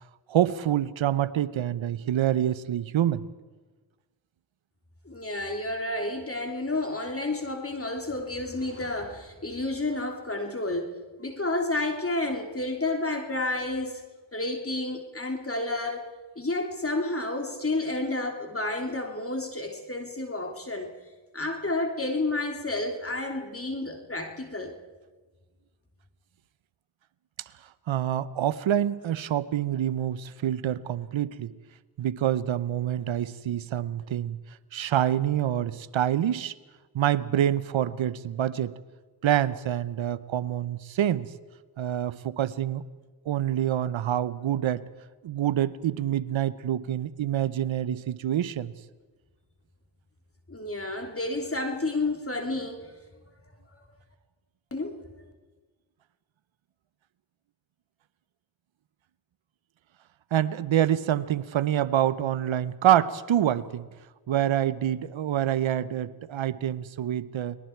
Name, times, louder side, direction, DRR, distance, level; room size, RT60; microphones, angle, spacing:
voice 1, 0.3-3.2 27.9-31.5 32.0-34.4 34.7-36.5 36.9-38.7 39.2-41.3 41.8-42.8 43.3-44.9 45.2-48.7 60.3-63.9 64.3-67.6, right 11 dB, 70° right, 17 dB, 1.0 m, -26 dB
voice 2, 5.0-10.9 11.2-14.0 14.3-16.0 16.3-20.9 21.3-24.7 50.5-53.0 54.7-55.0, left 2 dB, 25° left, 3 dB, 3.1 m, -30 dB
29.5 x 21.0 x 4.6 m, 1.3 s
supercardioid pair, 45°, 48 cm